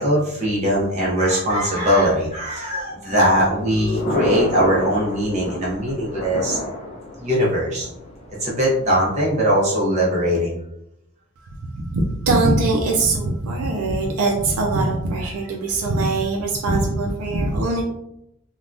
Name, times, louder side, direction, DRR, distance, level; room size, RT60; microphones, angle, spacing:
voice 1, 0.0-6.6 7.2-7.9 8.4-10.6, equal, 30° right, -5 dB, 0.6 m, -20 dB
Thunder, 3.5-9.2, left 1 dB, 30° left, 0.5 m, -31 dB
voice 2, 11.7-17.8, right 2 dB, 85° right, 1 dB, 0.4 m, -21 dB
3.3 x 2.2 x 2.5 m, 0.79 s
head